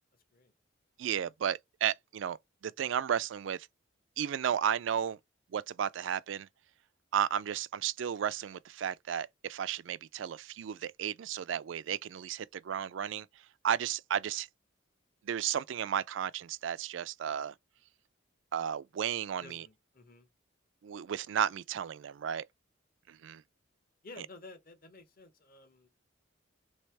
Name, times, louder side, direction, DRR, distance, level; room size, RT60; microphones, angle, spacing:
voice 1, 1.0-2.4 2.6-3.7 4.2-5.2 5.5-6.5 7.1-13.3 13.6-14.5 15.2-17.5 18.5-19.6 20.8-22.4 23.1-23.4, right 9 dB, 70° right, 0.3 m, -33 dB
voice 2, 19.4-20.3 24.0-25.9, left 2 dB, 50° left, 1.1 m, -52 dB
3.4 x 3.2 x 4.6 m
head